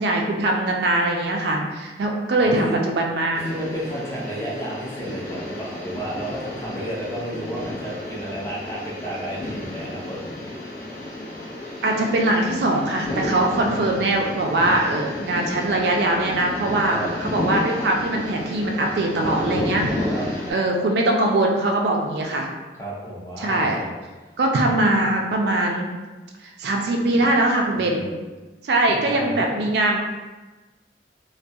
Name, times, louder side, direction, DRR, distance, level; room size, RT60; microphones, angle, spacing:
voice 1, 0.0-3.4 11.8-20.1 20.5-22.5 23.4-23.8 24.4-25.9 26.6-28.0 28.6-30.0, right 2 dB, 60° right, 1 dB, 0.3 m, -22 dB
voice 2, 2.4-2.8 3.4-10.2 13.6-13.9 14.5-14.8 16.9-17.1 20.1-20.3 22.8-24.0 27.7-28.2 28.9-29.5, right 1 dB, 15° left, -5 dB, 0.5 m, -32 dB
sound 1, 3.3-20.5, left 1 dB, 65° left, 0.6 m, -31 dB
2.3 x 2.2 x 2.6 m, 1.2 s
head